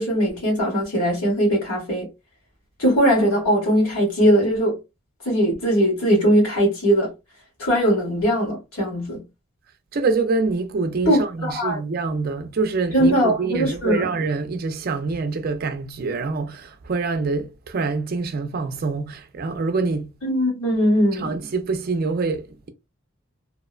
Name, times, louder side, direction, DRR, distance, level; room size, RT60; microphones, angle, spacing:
voice 1, 0.0-2.1 2.8-4.7 5.2-7.1 7.6-9.2 11.0-11.8 12.9-14.1 20.2-21.4, equal, 85° left, 1.5 m, -20 dB
voice 2, 9.9-20.2 21.1-22.7, right 4 dB, 45° right, 0.4 m, -25 dB
2.8 x 2.0 x 2.4 m
head